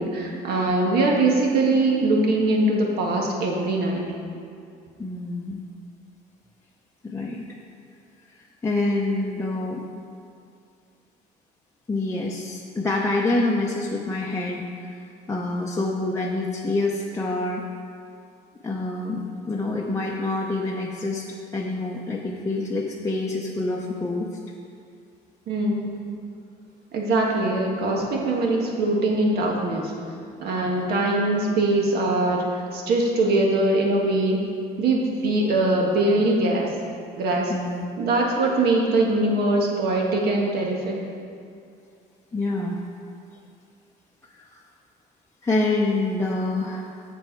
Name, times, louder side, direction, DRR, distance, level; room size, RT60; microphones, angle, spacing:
voice 1, 0.0-4.1 25.5-26.0 26.9-29.9 30.4-32.4 32.7-34.4 34.8-36.7 37.2-37.5 38.0-40.9, right 2 dB, 70° right, -1 dB, 1.5 m, -22 dB
voice 2, 5.0-5.6 7.0-7.4 8.6-9.8 11.9-14.9 15.3-17.6 18.6-21.3 21.5-24.3 37.5-37.8 42.3-42.8 44.5-44.6 45.4-47.0, left 2 dB, 15° left, -3 dB, 0.6 m, -26 dB
7.5 x 7.1 x 4.5 m, 2.4 s
cardioid pair, 110°, 17 cm